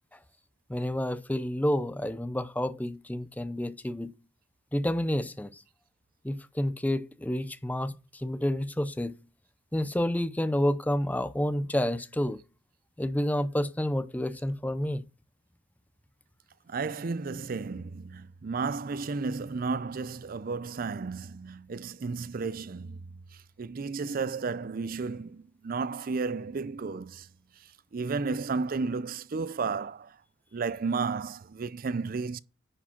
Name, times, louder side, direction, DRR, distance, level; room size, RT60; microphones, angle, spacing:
voice 1, 0.7-4.1 4.7-5.6 6.2-9.2 9.7-12.4 13.0-15.0, left 1 dB, 10° left, 0.5 m, -29 dB
voice 2, 16.7-27.3 27.9-30.2 30.5-32.4, right 4 dB, 45° right, 0.4 m, -33 dB
10.0 x 4.8 x 4.4 m
head